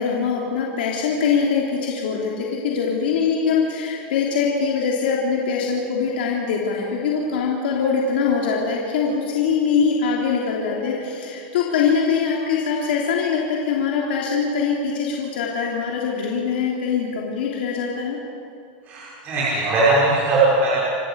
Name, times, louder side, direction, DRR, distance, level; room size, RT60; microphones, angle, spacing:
voice 1, 0.0-18.2, left 6 dB, 80° left, -2 dB, 3.3 m, -23 dB
voice 2, 18.9-20.8, right 2 dB, 30° right, -8 dB, 5.2 m, -19 dB
28.0 x 12.0 x 8.2 m, 2.6 s
supercardioid pair, 155°, 5 cm